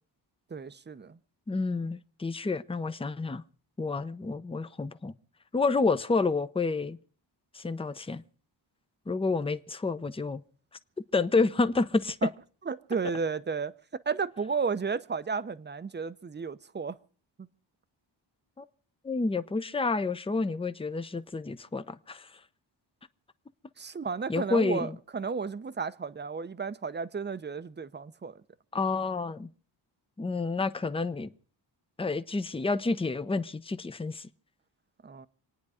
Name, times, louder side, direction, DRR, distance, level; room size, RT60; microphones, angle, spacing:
voice 1, 0.5-1.2 12.2-12.3 12.7-13.7 14.1-17.0 17.4-17.5 23.8-28.4 35.0-35.3, right 5 dB, 25° right, 0.7 m, -33 dB
voice 2, 1.5-3.4 3.8-5.1 5.5-7.0 7.5-8.2 9.1-10.4 11.1-12.3 18.6-18.7 19.0-22.3 24.3-25.0 28.7-29.5 30.2-31.3 32.0-34.3, left 3 dB, 10° left, 0.6 m, -29 dB
26.5 x 9.5 x 4.9 m
wide cardioid pair, 110°, 45 cm